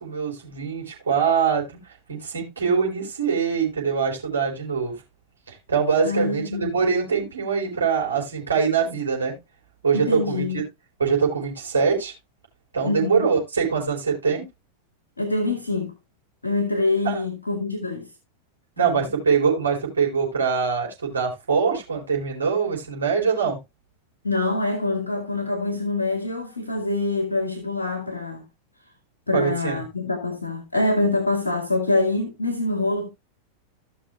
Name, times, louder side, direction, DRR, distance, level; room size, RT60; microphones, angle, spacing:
voice 1, 0.0-1.8 2.1-4.9 5.5-9.4 9.8-10.6 11.0-12.1 12.7-14.5 17.0-17.1 18.8-23.6 29.3-29.8, right 6 dB, 70° right, 4.4 m, -23 dB
voice 2, 6.0-6.8 9.9-10.6 12.8-13.3 15.2-15.9 16.4-18.1 18.8-19.0 24.2-28.4 29.3-33.1, left 2 dB, 80° left, 1.7 m, -25 dB
16.0 x 6.0 x 2.3 m
figure-of-eight pair, 90°, 0 cm